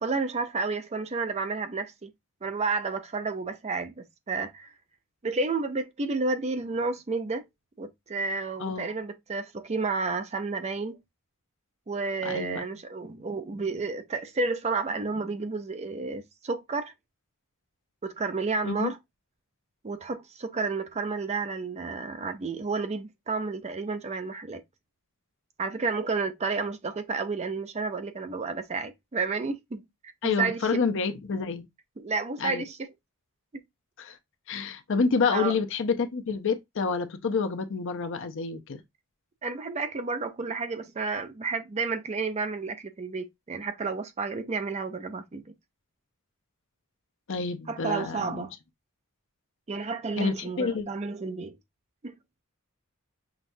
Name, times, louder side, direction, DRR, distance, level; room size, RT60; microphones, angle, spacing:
voice 1, 0.0-2.1 2.4-4.7 5.2-7.4 7.8-11.0 11.9-16.9 18.0-19.0 19.8-24.6 25.6-29.8 30.2-30.6 32.0-32.9 35.3-35.5 39.4-45.4 47.7-48.5 49.7-51.6 52.0-52.1, right 4 dB, 30° right, 0.5 m, -31 dB
voice 2, 12.2-12.6 18.6-18.9 30.2-31.7 32.4-32.6 34.0-34.2 34.5-38.8 47.3-48.5 50.2-50.9, left 4 dB, 60° left, 0.6 m, -28 dB
5.8 x 2.3 x 2.6 m
head